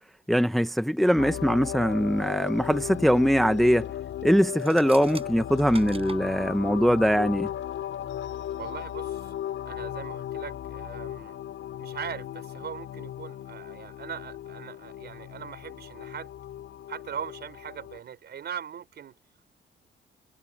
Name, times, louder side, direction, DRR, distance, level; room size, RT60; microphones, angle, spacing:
voice 1, 0.3-3.9 4.2-7.5, equal, ahead, 0.8 m, -22 dB
sound 1, 1.2-18.0, left 11 dB, 75° left, 5.9 m, -36 dB
sound 2, 4.5-6.2, right 4 dB, 30° right, 5.6 m, -43 dB
voice 2, 8.6-9.3 9.6-11.4 11.8-16.3 16.9-19.2, right 8 dB, 55° right, 5.0 m, -40 dB
cardioid pair, 90°, 20 cm